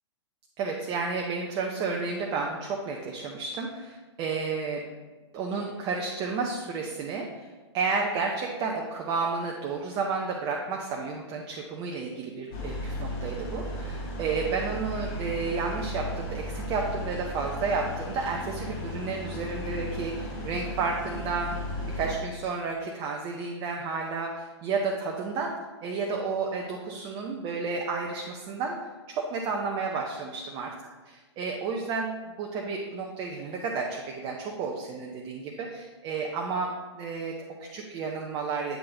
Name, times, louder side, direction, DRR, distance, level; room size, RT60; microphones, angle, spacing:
voice 1, 0.6-4.8 5.3-7.5 7.7-21.6 21.9-25.6 25.8-28.8 29.1-30.7 31.1-32.1 32.4-38.8, right 4 dB, 30° right, 0 dB, 0.6 m, -31 dB
sound 1, 12.5-22.2, left 1 dB, 40° left, 1.2 m, -35 dB
8.0 x 3.8 x 3.8 m, 1.2 s
figure-of-eight pair, 115°, 15 cm